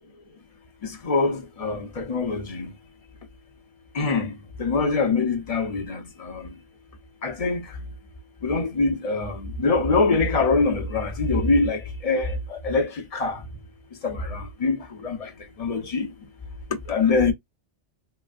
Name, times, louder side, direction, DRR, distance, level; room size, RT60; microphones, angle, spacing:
voice 1, 0.8-2.7 3.9-4.3 4.6-6.6 7.2-7.7 8.4-13.4 14.0-15.3 15.6-16.1 16.9-17.3, left 3 dB, 35° left, 0.7 m, -24 dB
3.8 x 2.1 x 2.3 m
omnidirectional pair, 1.2 m